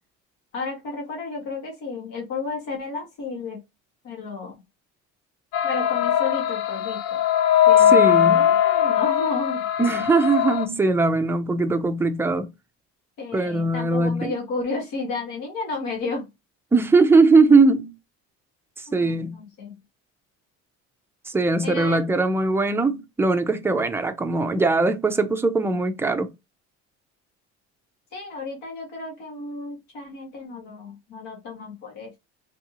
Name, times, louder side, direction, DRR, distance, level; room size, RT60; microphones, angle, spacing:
voice 1, 0.5-3.6 4.0-4.6 5.6-7.2 7.6-9.7 13.2-16.3 18.9-19.8 21.6-22.0 28.1-32.2, left 3 dB, 80° left, 1.5 m, -32 dB
sound 1, 5.5-10.7, left 10 dB, 65° left, 0.5 m, -20 dB
voice 2, 7.9-8.4 9.8-12.5 13.3-14.3 16.7-17.9 18.8-19.4 21.3-26.3, right 3 dB, 10° right, 0.4 m, -20 dB
3.3 x 2.7 x 2.7 m
cardioid pair, 130°, 29 cm